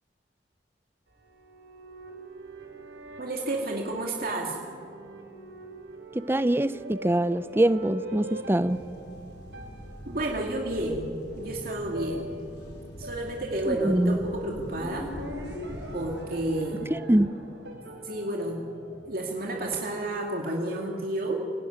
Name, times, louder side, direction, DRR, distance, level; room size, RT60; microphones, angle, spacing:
sound 1, 1.1-19.7, equal, 75° right, 5.9 m, -43 dB
voice 1, 3.2-4.6 10.1-12.3 13.0-15.1 15.9-16.9 18.0-18.7 19.1-21.4, right 1 dB, 55° right, 2.4 m, -31 dB
voice 2, 6.1-8.8 13.7-14.2 16.9-17.3, right 1 dB, 15° right, 0.6 m, -24 dB
sound 2, 8.7-16.3, equal, 70° left, 5.4 m, -44 dB
27.0 x 18.5 x 9.5 m
head